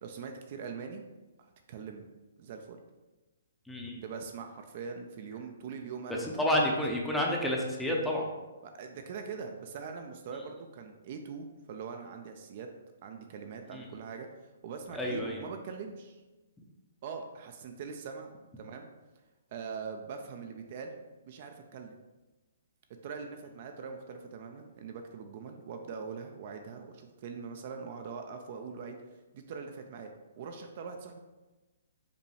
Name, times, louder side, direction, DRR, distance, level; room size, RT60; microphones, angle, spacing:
voice 1, 0.0-1.0 1.4-2.1 2.4-2.8 4.0-6.7 8.6-12.7 13.0-14.3 14.6-16.2 17.0-18.3 18.6-18.9 19.5-20.9 21.3-22.0 23.0-29.0 29.3-31.2, right 5 dB, 45° right, 5 dB, 0.4 m, -42 dB
voice 2, 3.7-4.0 6.2-8.3 13.7-13.9 14.9-15.4, left 1 dB, 5° left, -1 dB, 0.6 m, -30 dB
4.9 x 2.2 x 3.2 m, 1.1 s
hypercardioid pair, 140°, 0 cm